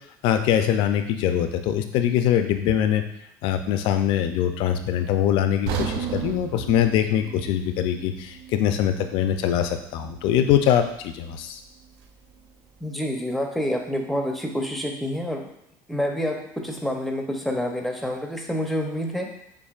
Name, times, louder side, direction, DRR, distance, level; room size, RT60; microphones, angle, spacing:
voice 1, 0.2-3.0 3.4-11.6, left 10 dB, 65° left, 8 dB, 0.4 m, -23 dB
sound 1, 5.7-9.7 10.1-10.2 10.8-10.9, right 7 dB, 75° right, 0.5 m, -34 dB
voice 2, 12.8-15.4 15.9-19.3, equal, ahead, 2 dB, 0.7 m, -28 dB
7.0 x 2.5 x 2.4 m, 0.76 s
supercardioid pair, 115°, 9 cm